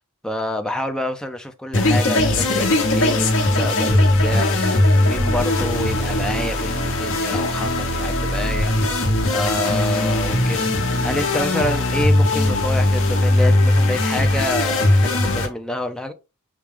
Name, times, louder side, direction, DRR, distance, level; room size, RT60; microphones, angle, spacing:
voice 1, 0.2-8.8 9.3-16.1, left 1 dB, 5° left, 0.5 m, -28 dB
sound 1, 1.7-15.5, left 1 dB, 60° left, 1.0 m, -19 dB
5.9 x 2.3 x 3.3 m
head